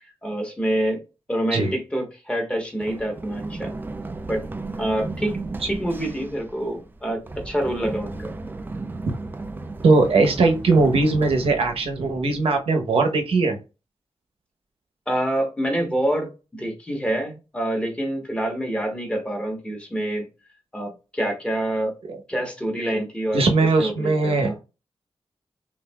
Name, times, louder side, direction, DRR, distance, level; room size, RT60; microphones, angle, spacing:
voice 1, 0.2-1.0 1.3-3.7 4.3-4.4 4.8-5.3 5.7-8.3 15.1-20.3 20.7-21.9 22.3-23.4 23.8-24.6, right 1 dB, 10° left, 2 dB, 1.1 m, -26 dB
Run, 2.8-12.5, right 3 dB, 20° right, 0.4 m, -35 dB
voice 2, 9.8-13.6 23.3-24.6, right 3 dB, 75° right, 4 dB, 0.9 m, -19 dB
5.6 x 2.6 x 2.3 m, 0.29 s
wide cardioid pair, 135°, 10 cm